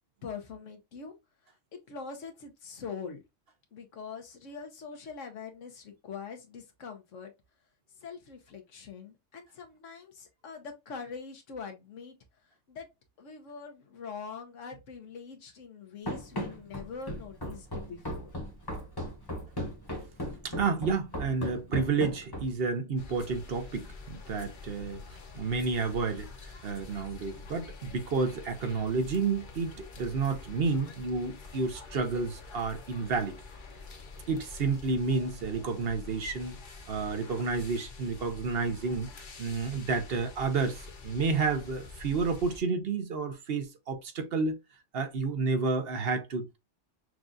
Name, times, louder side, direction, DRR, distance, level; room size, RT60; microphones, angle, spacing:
voice 1, 0.2-1.1 1.9-3.2 3.7-7.3 8.0-12.2 12.7-12.9 13.2-18.3, left 5 dB, 80° left, 1.2 m, -43 dB
Run, 16.1-22.7, equal, 20° left, 0.9 m, -36 dB
voice 2, 20.4-25.0 25.3-33.4 34.3-36.6 36.9-39.1 39.4-44.6 44.9-46.6, right 4 dB, 55° right, 0.9 m, -30 dB
sound 1, 23.0-42.6, left 4 dB, 45° left, 0.9 m, -47 dB
6.0 x 2.4 x 2.5 m
omnidirectional pair, 1.3 m